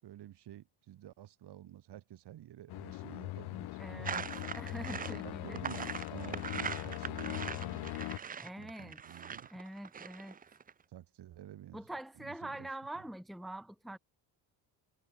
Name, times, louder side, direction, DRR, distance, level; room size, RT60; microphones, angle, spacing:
voice 1, 0.0-3.8 4.9-8.3 8.6-9.5 10.9-11.9 12.2-12.7 12.9-13.0, right 12 dB, 60° right, 5.1 m, -50 dB
sound 1, 2.7-8.2, left 18 dB, 60° left, 0.6 m, -40 dB
voice 2, 3.8-5.6 8.4-9.0 9.5-10.4 11.7-14.0, right 1 dB, ahead, 1.1 m, -44 dB
sound 2, 4.0-10.7, right 7 dB, 20° right, 0.5 m, -41 dB
cardioid pair, 140°, 45 cm